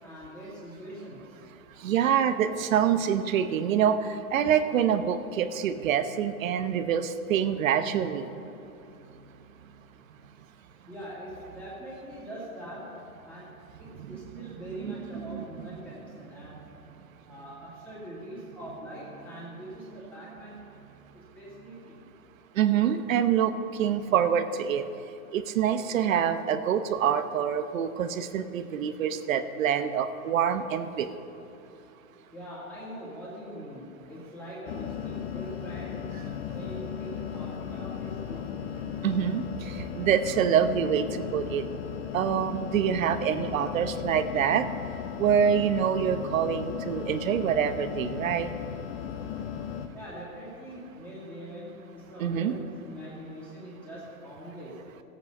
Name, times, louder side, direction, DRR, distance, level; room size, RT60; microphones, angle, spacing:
voice 1, 0.0-1.4 2.3-2.4 6.6-7.0 10.9-13.5 13.8-16.6 17.3-20.7 21.1-22.0 32.3-38.4 49.9-54.8, equal, 5° left, -9 dB, 2.1 m, -43 dB
voice 2, 1.8-4.0 4.3-8.3 14.8-14.9 15.3-15.4 22.6-23.5 23.8-24.8 25.3-31.1 39.0-39.4 40.0-41.0 41.3-41.6 42.1-44.6 45.2-48.5 52.2-52.6, right 8 dB, 60° right, 11 dB, 0.8 m, -25 dB
sound 1, 34.7-49.9, left 8 dB, 45° left, 0.7 m, -36 dB
14.5 x 8.3 x 5.3 m, 2.9 s
hypercardioid pair, 160°, 44 cm